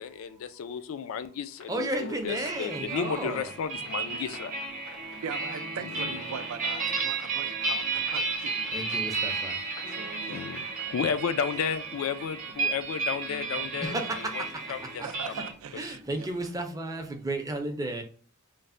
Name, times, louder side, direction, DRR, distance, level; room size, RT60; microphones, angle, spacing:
voice 1, 0.0-4.5 5.8-5.9 10.3-14.4 14.7-15.0, left 7 dB, 70° left, 0.3 m, -33 dB
sound 1, 1.5-11.3, left 3 dB, 85° left, 1.1 m, -51 dB
voice 2, 1.7-3.5 8.7-9.6 13.8-14.6 14.9-15.1 15.3-15.4 15.8-18.0, right 1 dB, 15° right, 0.5 m, -33 dB
sound 2, 2.3-15.5, right 4 dB, 40° right, 0.8 m, -33 dB
voice 3, 4.0-4.4 5.2-9.3 9.9-10.7 15.0-16.3, right 6 dB, 80° right, 0.4 m, -41 dB
3.1 x 2.1 x 2.5 m
head